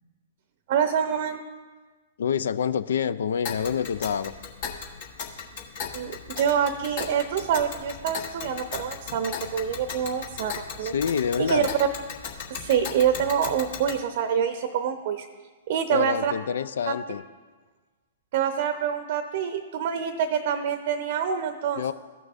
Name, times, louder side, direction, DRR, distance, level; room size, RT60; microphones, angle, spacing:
voice 1, 0.7-1.4 5.9-10.9 11.4-11.9 12.5-15.3 15.7-16.3 16.9-17.0 18.3-21.8, right 8 dB, 50° right, 8 dB, 0.7 m, -26 dB
voice 2, 2.2-4.3 10.8-11.7 15.9-17.2 21.8-21.9, left 7 dB, 65° left, 14 dB, 0.4 m, -27 dB
Tick, 3.4-14.0, left 6 dB, 50° left, 1.2 m, -37 dB
15.0 x 6.1 x 2.6 m, 1.3 s
figure-of-eight pair, 115°, 0 cm